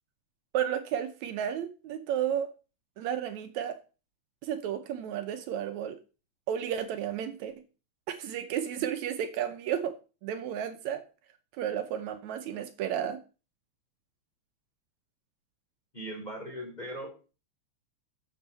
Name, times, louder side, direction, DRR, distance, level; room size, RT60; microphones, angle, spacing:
voice 1, 0.5-2.5 3.0-3.8 4.4-6.0 6.5-7.5 8.1-10.0 10.2-11.0 11.5-13.2, right 9 dB, 75° right, 9 dB, 2.1 m, -32 dB
voice 2, 15.9-17.1, right 1 dB, 15° left, 1 dB, 3.2 m, -39 dB
13.5 x 6.4 x 4.1 m, 0.33 s
omnidirectional pair, 3.4 m